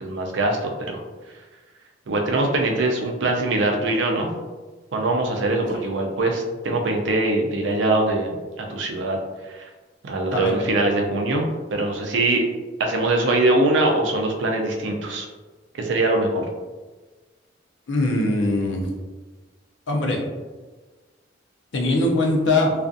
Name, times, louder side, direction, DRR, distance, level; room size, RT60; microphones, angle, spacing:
voice 1, 0.0-1.0 2.1-4.3 4.9-9.2 9.5-9.7 10.0-12.4 12.8-15.3 15.7-16.5, right 2 dB, 80° right, 2 dB, 0.4 m, -22 dB
voice 2, 17.9-18.9 19.9-20.2 21.7-22.7, left 2 dB, 85° left, 0 dB, 0.5 m, -21 dB
2.4 x 2.4 x 2.5 m, 1.3 s
head